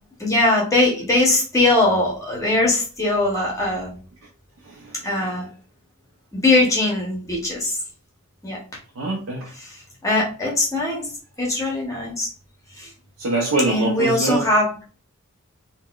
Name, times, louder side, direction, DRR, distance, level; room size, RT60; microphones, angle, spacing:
voice 1, 0.2-3.9 5.0-5.5 6.3-7.8 8.4-8.6 9.6-11.1 11.4-12.3 12.7-12.9 13.7-14.7, left 2 dB, 15° left, 0.7 m, -21 dB
voice 2, 4.7-5.3 9.0-9.5 13.2-14.5, right 2 dB, 70° right, 0.5 m, -24 dB
3.8 x 2.1 x 2.3 m
head